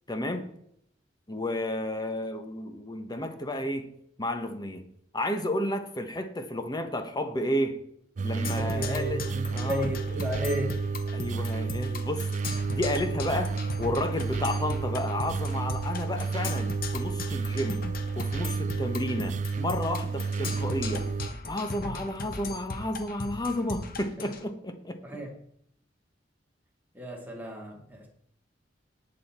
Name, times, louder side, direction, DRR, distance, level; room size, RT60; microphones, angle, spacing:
voice 1, 0.1-0.5 1.3-3.9 4.2-4.9 5.1-7.8 8.2-9.2 9.5-9.9 11.1-12.2 12.7-17.8 18.2-21.1 21.5-25.0, left 1 dB, 20° left, 7 dB, 1.1 m, -32 dB
sound 1, 8.2-21.3, right 4 dB, 40° right, 0.3 m, -31 dB
Percussion, 8.4-24.4, left 3 dB, 55° left, 1.2 m, -38 dB
voice 2, 8.5-10.8 25.0-25.3 26.9-28.1, right 1 dB, 10° right, 0 dB, 2.3 m, -33 dB
18.5 x 6.5 x 4.4 m, 0.71 s
head